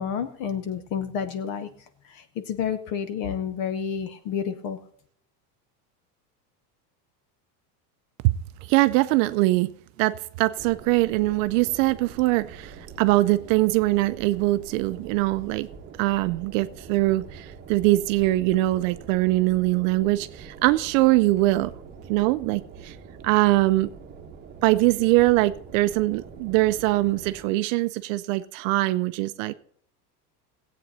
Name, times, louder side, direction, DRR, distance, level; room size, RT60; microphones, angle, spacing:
voice 1, 0.0-4.8, left 7 dB, 45° left, 10 dB, 0.9 m, -30 dB
voice 2, 8.7-9.7 10.0-15.7 16.0-21.7 22.1-23.0 23.2-23.9 24.6-29.5, right 18 dB, 55° right, 13 dB, 0.5 m, -22 dB
sound 1, 10.6-27.4, right 5 dB, 20° right, 1.2 m, -44 dB
16.0 x 8.5 x 4.1 m, 0.62 s
supercardioid pair, 155°, 48 cm